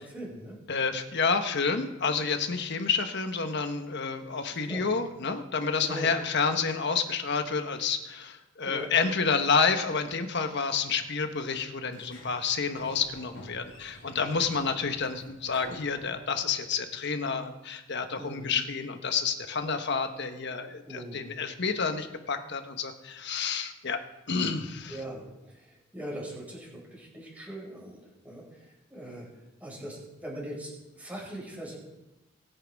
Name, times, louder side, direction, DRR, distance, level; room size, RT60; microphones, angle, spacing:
voice 1, 0.0-0.6 4.6-4.8 5.8-6.1 8.6-8.9 18.2-18.6 20.8-21.4 24.9-29.3 29.6-31.8, right 1 dB, 10° right, -4 dB, 5.5 m, -41 dB
voice 2, 0.7-24.0 24.3-25.0, left 5 dB, 60° left, 7 dB, 1.2 m, -29 dB
Sliding door, 11.9-16.6, left 2 dB, 80° left, 3.9 m, -50 dB
23.0 x 9.2 x 3.6 m, 1.0 s
head